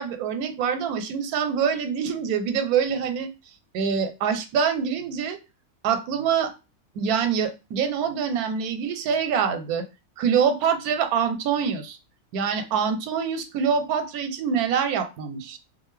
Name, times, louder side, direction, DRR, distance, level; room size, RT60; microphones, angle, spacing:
voice 1, 0.0-3.3 3.7-5.4 5.8-6.5 7.0-9.9 10.2-12.0 12.3-15.6, right 7 dB, 90° right, 8 dB, 1.1 m, -25 dB
2.6 x 2.4 x 3.1 m, 0.28 s
omnidirectional pair, 1.5 m